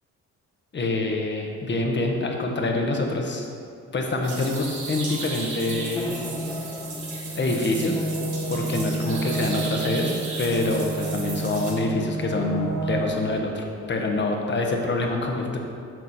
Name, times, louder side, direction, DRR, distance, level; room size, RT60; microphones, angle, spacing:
voice 1, 0.7-3.5 3.9-6.3 7.3-8.0 8.5-10.1 10.4-15.6, left 2 dB, 40° left, 2 dB, 1.2 m, -26 dB
sound 1, 4.2-11.7, right 3 dB, 75° right, 2.1 m, -36 dB
sound 2, 5.6-13.4, right 2 dB, 10° left, 1.1 m, -31 dB
9.2 x 6.1 x 4.2 m, 2.4 s
cardioid pair, 90°, 30 cm